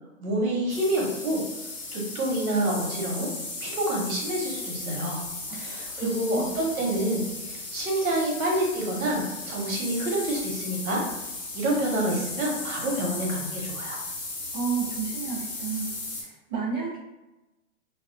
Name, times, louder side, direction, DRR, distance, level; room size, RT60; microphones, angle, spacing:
voice 1, 0.2-1.4 1.9-3.3 3.6-5.2 5.5-11.0 11.5-14.0, right 1 dB, 85° right, -2 dB, 1.0 m, -28 dB
sound 1, 0.7-16.2, left 2 dB, 65° left, 1.0 m, -36 dB
voice 2, 6.0-6.6 14.5-17.0, right 6 dB, 20° right, -12 dB, 0.5 m, -32 dB
2.3 x 2.2 x 2.4 m, 1.0 s
hypercardioid pair, 175°, 41 cm